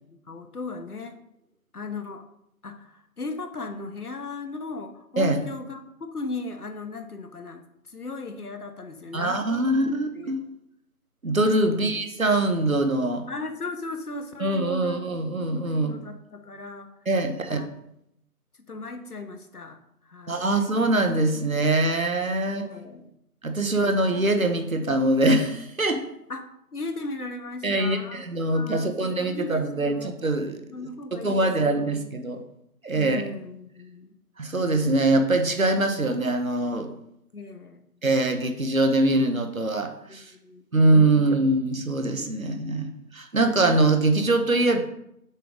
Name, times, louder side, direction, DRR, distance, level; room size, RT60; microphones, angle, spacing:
voice 1, 0.3-1.1 1.7-2.2 2.6-7.6 7.9-9.8 10.1-10.4 11.6-12.0 13.3-16.9 17.5-17.7 18.7-19.8 20.1-20.5 22.4-23.1 23.6-24.0 26.3-26.5 26.7-28.2 28.5-30.1 30.7-31.8 32.9-34.1 37.3-37.8 40.0-40.9 41.1-41.3, left 3 dB, 70° left, 7 dB, 1.0 m, -37 dB
voice 2, 9.1-10.4 11.2-13.3 14.4-16.0 17.1-17.6 20.3-22.6 23.4-26.0 27.6-32.4 32.8-33.2 34.4-36.9 38.0-40.2 40.7-44.8, right 2 dB, 60° right, 7 dB, 1.0 m, -23 dB
6.7 x 3.8 x 5.0 m, 0.78 s
figure-of-eight pair, 165°, 47 cm